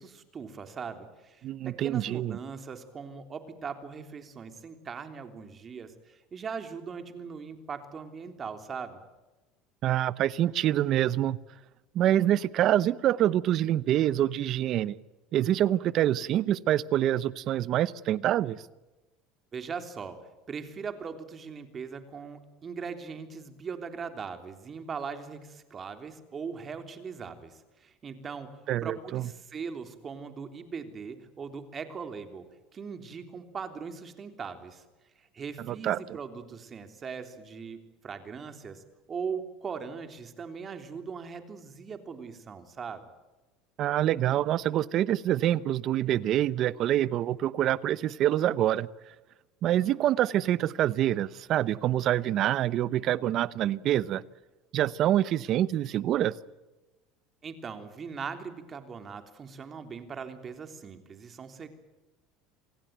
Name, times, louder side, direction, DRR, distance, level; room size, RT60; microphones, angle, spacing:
voice 1, 0.0-9.0 19.5-34.8 35.2-43.1 57.4-61.7, right 6 dB, 30° right, 8 dB, 3.4 m, -40 dB
voice 2, 1.4-2.4 9.8-11.4 11.9-15.0 15.3-18.6 28.7-29.3 35.7-36.0 43.8-48.9 49.6-54.2 54.7-56.4, right 12 dB, 50° right, 19 dB, 0.9 m, -26 dB
27.5 x 18.0 x 9.3 m, 1.1 s
supercardioid pair, 115°, 0 cm